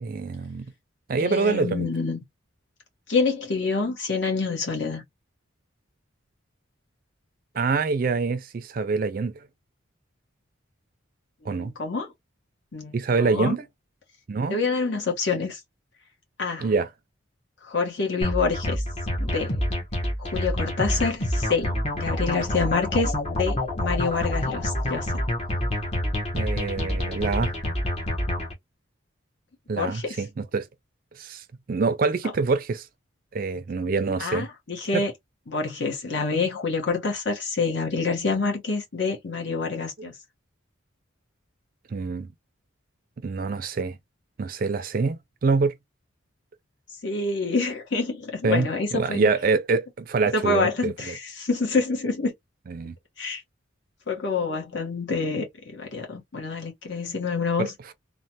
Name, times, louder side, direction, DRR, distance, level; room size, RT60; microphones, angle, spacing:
voice 1, 0.0-0.7 1.1-1.9 7.6-9.3 11.5-11.7 12.9-13.7 14.3-14.6 16.6-16.9 26.3-27.5 29.7-30.7 31.2-32.9 33.3-34.5 34.9-35.0 41.9-42.3 43.2-44.0 44.4-45.7 48.4-51.1 52.7-52.9 57.6-57.7, right 4 dB, 45° right, 0.4 m, -25 dB
voice 2, 1.2-2.2 3.1-5.0 11.4-12.1 12.7-13.6 14.5-15.6 16.4-16.7 17.7-18.8 19.2-19.6 20.2-25.1 29.8-30.2 34.2-35.1 35.5-40.1 47.0-49.2 50.3-52.3 53.2-53.4 54.1-55.5 55.7-57.7, left 4 dB, 60° left, 1.0 m, -27 dB
sound 1, 18.2-28.5, left 1 dB, 30° left, 0.9 m, -27 dB
3.1 x 2.1 x 2.7 m
head